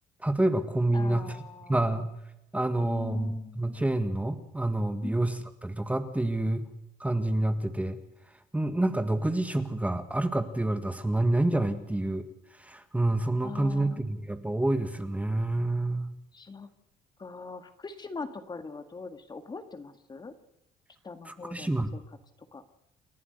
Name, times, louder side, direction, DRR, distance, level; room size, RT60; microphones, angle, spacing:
voice 1, 0.2-1.3 1.7-2.1 2.5-6.6 7.0-8.0 8.5-12.2 12.6-16.1 21.3-21.9, right 1 dB, 10° right, 9 dB, 1.7 m, -28 dB
voice 2, 0.9-2.0 2.8-3.8 5.0-5.2 13.4-14.2 16.3-16.7 17.2-20.3 21.0-22.0 22.5-22.6, left 4 dB, 25° left, 10 dB, 1.9 m, -42 dB
29.0 x 11.0 x 8.0 m, 0.88 s
cardioid pair, 110°, 17 cm